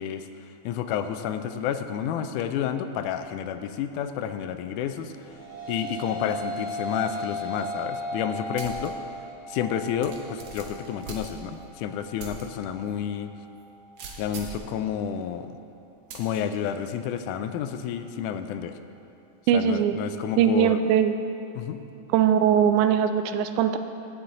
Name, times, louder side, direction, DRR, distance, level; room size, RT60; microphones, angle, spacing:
voice 1, 0.0-5.1 5.7-9.0 9.5-13.3 14.2-15.5 16.1-18.7 19.5-20.8 21.6-21.8, left 9 dB, 85° left, 9 dB, 2.0 m, -30 dB
sound 1, 5.0-14.2, equal, 30° right, 1.9 m, -37 dB
sound 2, 8.6-8.9 9.3-9.4 10.0-11.7 12.2-12.4 12.9-13.0 14.0-14.7 16.1-16.4, right 5 dB, 60° right, 1.6 m, -41 dB
voice 2, 19.5-19.9 20.4-21.1 22.1-23.8, right 9 dB, 85° right, 9 dB, 2.0 m, -20 dB
16.5 x 7.4 x 3.8 m, 2.8 s
omnidirectional pair, 3.5 m